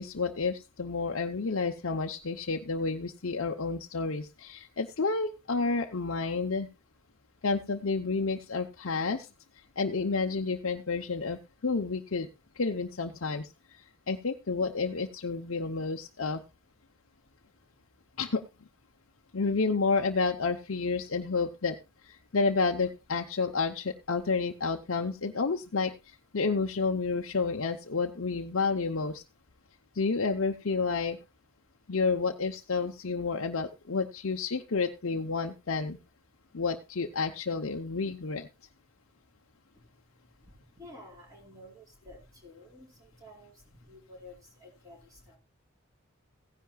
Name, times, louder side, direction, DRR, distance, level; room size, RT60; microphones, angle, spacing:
voice 1, 0.0-6.7 7.4-9.3 9.8-12.3 12.6-13.5 14.1-16.4 18.2-18.4 19.3-21.8 22.0-29.2 29.9-31.2 31.9-36.0 36.5-38.5, left 4 dB, 70° left, 3 dB, 0.8 m, -30 dB
voice 2, 40.4-45.4, left 1 dB, 15° right, -1 dB, 4.6 m, -51 dB
16.0 x 10.5 x 2.3 m, 0.26 s
head